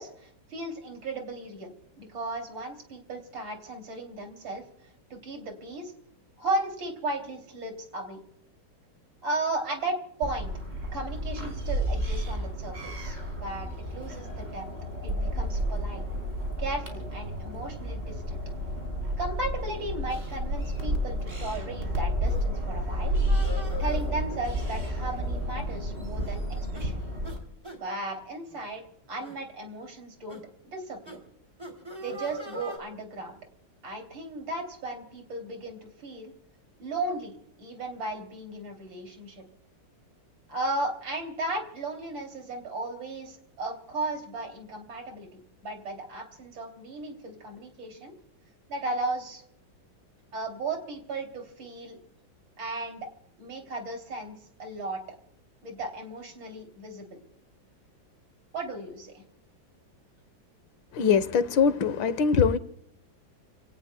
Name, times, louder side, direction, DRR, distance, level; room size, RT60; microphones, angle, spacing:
voice 1, 0.0-5.9 6.4-8.2 9.2-10.5 10.9-14.7 15.0-16.0 16.6-18.4 19.2-23.2 23.8-26.4 26.7-27.0 27.8-28.8 29.1-31.2 32.0-33.4 33.8-36.3 36.8-39.4 40.5-48.1 48.7-49.4 50.3-52.0 52.6-53.1 53.4-55.2 55.6-57.2 58.5-59.2, right 2 dB, 80° right, 3.8 m, -35 dB
city river, 10.2-27.4, equal, 30° right, 3.9 m, -31 dB
Dungeon of a asylum, 22.2-22.5 23.2-24.1 25.0-25.4 25.7-25.8 26.2-26.4 26.7-26.9 27.2-27.4 27.6-27.8 28.5-28.7 29.2-29.4 30.3-30.4 31.0-31.2 31.6-32.8, equal, 15° right, 3.1 m, -41 dB
voice 2, 60.9-62.6, left 6 dB, 85° left, 1.8 m, -22 dB
30.0 x 18.0 x 2.2 m
omnidirectional pair, 2.1 m